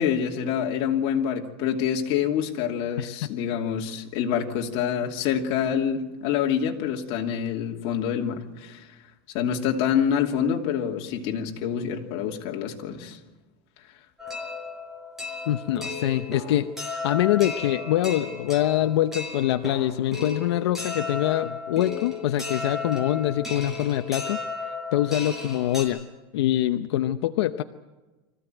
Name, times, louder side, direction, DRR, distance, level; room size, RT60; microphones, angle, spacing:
voice 1, 0.0-8.9 9.3-13.2, left 8 dB, 50° left, 1 dB, 2.8 m, -26 dB
voice 2, 3.0-3.3 15.5-16.7 17.0-24.4 24.9-26.1 26.3-27.6, left 13 dB, 85° left, 8 dB, 0.8 m, -24 dB
sound 1, 14.2-25.8, left 4 dB, 5° right, 5.9 m, -34 dB
24.5 x 15.0 x 9.2 m, 1.2 s
supercardioid pair, 155°, 14 cm